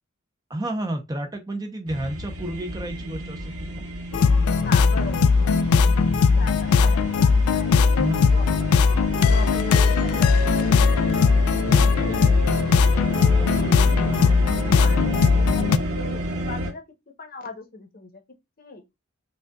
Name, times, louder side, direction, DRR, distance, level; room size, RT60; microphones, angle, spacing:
voice 1, 0.5-3.8 8.0-8.3 11.6-12.4, right 1 dB, 20° right, 0.6 m, -31 dB
sound 1, 1.9-16.7, right 1 dB, 85° right, 1.0 m, -31 dB
sound 2, 4.1-15.8, left 5 dB, 90° left, 0.3 m, -19 dB
voice 2, 4.6-6.5 6.8-8.6 9.3-10.5 12.0-12.2 13.4-13.8 14.0-15.7 15.9-16.8 17.2-18.2 18.6-18.8, left 3 dB, 40° left, 0.9 m, -39 dB
Wind instrument woodwind instrument, 8.3-14.9, right 2 dB, 45° right, 2.5 m, -39 dB
5.2 x 2.3 x 2.3 m
head